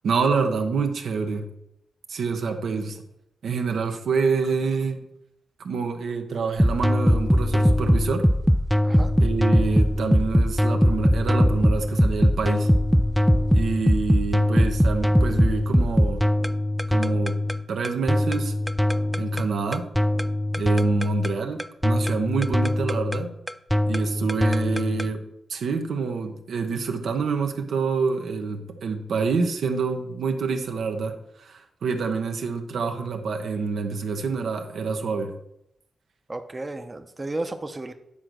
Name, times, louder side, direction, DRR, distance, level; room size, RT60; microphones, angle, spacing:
voice 1, 0.0-1.5 2.1-3.0 3.4-5.0 5.6-8.3 9.2-12.7 13.5-16.2 16.9-17.4 17.7-18.5 19.2-19.8 20.6-23.3 23.9-25.2 25.5-35.3, right 5 dB, 80° right, 4 dB, 0.9 m, -27 dB
sound 1, 6.6-25.1, equal, ahead, 0.4 m, -21 dB
voice 2, 36.3-37.9, right 2 dB, 25° right, 7 dB, 0.7 m, -33 dB
9.8 x 3.9 x 6.2 m, 0.81 s
cardioid pair, 70°, 0 cm